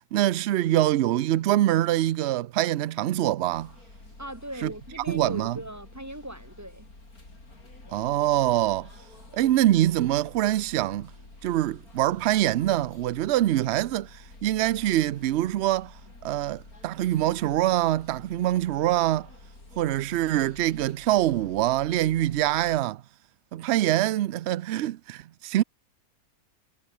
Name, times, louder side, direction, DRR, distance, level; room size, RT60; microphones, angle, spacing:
voice 1, 0.1-3.7 4.6-4.7 5.1-5.6 7.9-8.9 9.3-11.1 11.4-15.9 16.2-19.3 19.8-23.0 23.5-25.6, right 14 dB, 60° right, 0.7 m, -24 dB
sound 1, 3.5-22.8, left 2 dB, 90° left, 6.3 m, -49 dB
voice 2, 4.2-6.9, right 1 dB, 15° right, 1.0 m, -39 dB
omnidirectional pair, 1.5 m